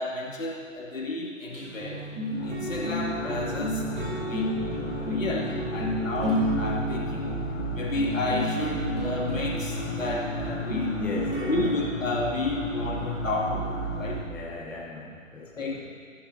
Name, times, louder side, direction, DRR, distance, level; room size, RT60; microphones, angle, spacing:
voice 1, 0.0-2.0 2.4-4.5 5.0-7.3 7.7-11.0 11.5-14.2 15.5-15.8, left 2 dB, 75° left, -3 dB, 2.7 m, -31 dB
sound 1, 1.5-11.9, equal, 25° right, 2.4 m, -32 dB
sound 2, 2.3-14.2, equal, 25° left, 2.6 m, -33 dB
voice 2, 11.0-11.7 14.2-15.8, left 3 dB, 5° left, -5 dB, 0.7 m, -38 dB
16.5 x 10.5 x 2.8 m, 2.1 s
figure-of-eight pair, 130°, 39 cm